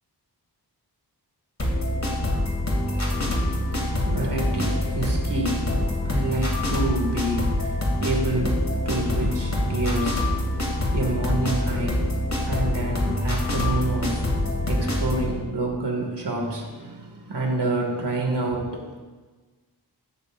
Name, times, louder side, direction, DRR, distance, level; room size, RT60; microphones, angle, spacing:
sound 1, 1.6-15.3, left 1 dB, 40° left, 3.0 m, -25 dB
voice 1, 2.7-19.0, right 2 dB, 75° right, 0 dB, 2.5 m, -29 dB
16.0 x 11.5 x 2.7 m, 1.3 s
wide cardioid pair, 90°, 41 cm